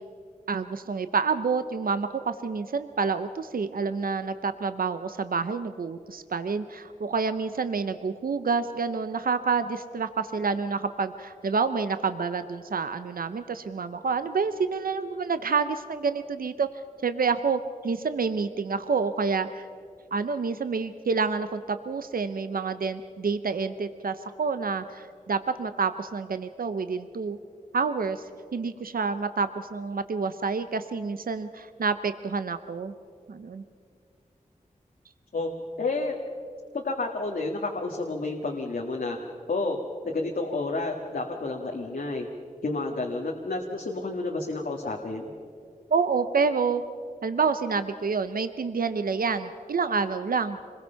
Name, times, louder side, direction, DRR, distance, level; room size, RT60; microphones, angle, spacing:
voice 1, 0.5-16.7 17.0-19.7 20.1-27.4 27.7-28.2 28.5-32.9 33.3-33.6 45.9-46.8 47.2-50.6, right 5 dB, 85° right, 10 dB, 0.7 m, -28 dB
voice 2, 35.8-36.2 36.7-39.2 39.5-39.8 40.0-42.3 42.6-45.3, left 3 dB, 90° left, 0 dB, 1.7 m, -30 dB
26.0 x 21.0 x 5.7 m, 2.3 s
wide cardioid pair, 75°, 14 cm